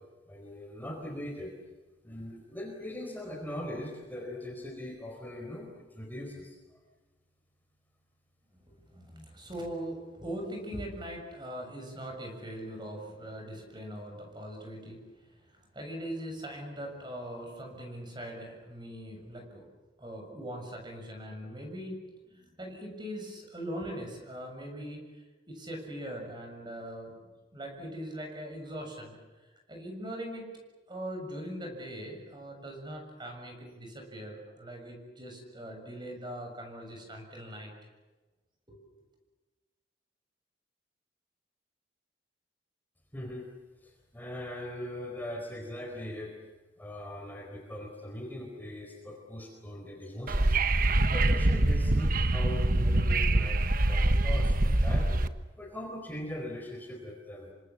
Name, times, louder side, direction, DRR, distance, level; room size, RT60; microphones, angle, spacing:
voice 1, 0.3-1.6 2.0-6.6 43.1-43.5 43.8-46.3 46.8-50.7 51.1-53.6 53.9-55.2 55.6-57.5, left 1 dB, 10° left, 1 dB, 4.5 m, -40 dB
voice 2, 8.5-19.6 20.0-22.0 22.3-30.5 30.9-37.7 38.7-38.8, equal, 25° right, 3 dB, 7.1 m, -41 dB
Wind / Subway metro underground, 50.3-55.3, right 2 dB, 50° right, 1.2 m, -25 dB
28.0 x 26.0 x 7.3 m, 1.2 s
head